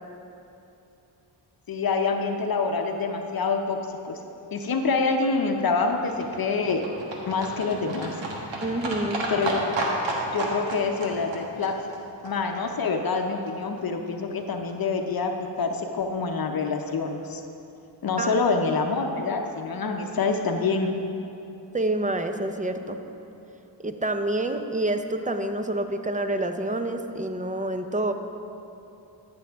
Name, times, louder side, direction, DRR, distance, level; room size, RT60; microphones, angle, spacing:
voice 1, 1.7-3.8 4.0-4.2 4.5-6.8 7.3-8.2 9.3-9.6 10.3-11.8 12.2-17.4 18.0-21.0, left 4 dB, 55° left, 4 dB, 0.8 m, -26 dB
Livestock farm animals working animals, 5.0-13.2 13.5-13.6 13.8-13.9 14.1-14.2 14.4-14.5 14.7-14.8 15.0-15.1 15.3-15.4 15.7-15.8, right 2 dB, 80° right, 1.4 m, -32 dB
voice 2, 8.6-9.2 18.2-18.4 21.7-23.0 23.8-28.1, right 1 dB, 15° right, 7 dB, 0.7 m, -27 dB
13.5 x 6.1 x 3.5 m, 2.9 s
cardioid pair, 55°, 44 cm